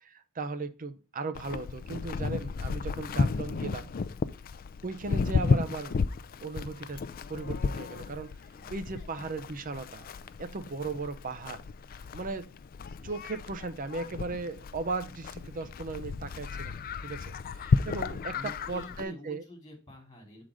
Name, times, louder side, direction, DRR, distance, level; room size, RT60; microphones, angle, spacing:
voice 1, 0.0-3.9 4.8-6.0 6.4-7.0 7.3-8.3 8.7-10.1 10.4-11.6 12.1-12.5 13.0-16.8 17.0-17.3 17.6-19.4, right 3 dB, 40° right, 10 dB, 0.6 m, -37 dB
Livestock farm animals working animals, 1.3-19.0, left 4 dB, 40° left, 0.3 m, -33 dB
voice 2, 8.5-9.3 18.3-20.4, left 1 dB, 20° left, 0 dB, 2.7 m, -48 dB
7.6 x 4.0 x 4.7 m, 0.34 s
head